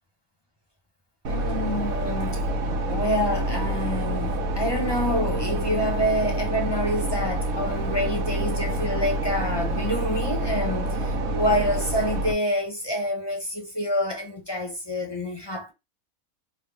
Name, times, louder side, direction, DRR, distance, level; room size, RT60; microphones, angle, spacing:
sound 1, 1.2-12.3, right 1 dB, 85° right, 1.1 m, -27 dB
voice 1, 1.3-2.4 2.9-15.7, equal, 25° left, 0.6 m, -27 dB
3.5 x 2.1 x 3.4 m
omnidirectional pair, 1.5 m